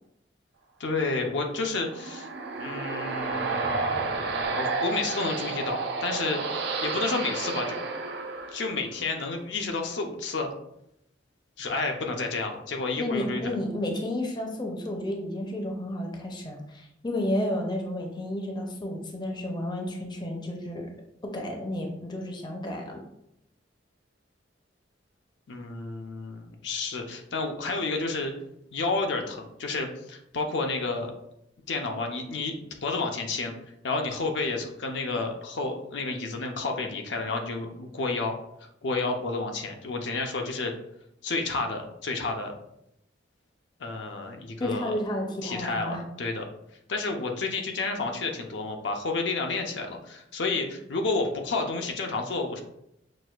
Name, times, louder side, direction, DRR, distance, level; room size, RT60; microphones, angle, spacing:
voice 1, 0.8-2.3 2.6-7.8 8.5-10.5 11.6-13.5 25.5-28.3 28.7-31.1 31.7-33.5 33.8-38.3 38.8-40.7 41.2-42.6 43.8-44.9 45.4-46.5 46.9-52.6, left 3 dB, 70° left, 3 dB, 0.6 m, -30 dB
sound 1, 1.5-9.1, right 3 dB, 70° right, 0.5 m, -31 dB
voice 2, 13.0-20.9 21.2-23.0 44.6-46.0, left 1 dB, 25° left, 1 dB, 0.5 m, -32 dB
6.1 x 2.4 x 2.3 m, 0.78 s
head